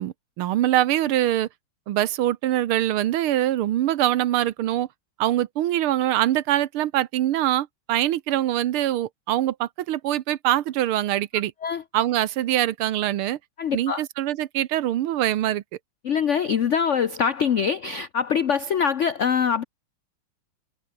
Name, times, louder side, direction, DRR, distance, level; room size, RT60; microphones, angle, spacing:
voice 1, 0.0-1.5 1.9-4.9 5.2-11.5 11.9-13.4 13.7-15.6, right 13 dB, 85° right, 1.8 m, -23 dB
voice 2, 13.6-14.0 16.0-19.6, left 7 dB, 80° left, 0.6 m, -23 dB
omnidirectional pair, 2.3 m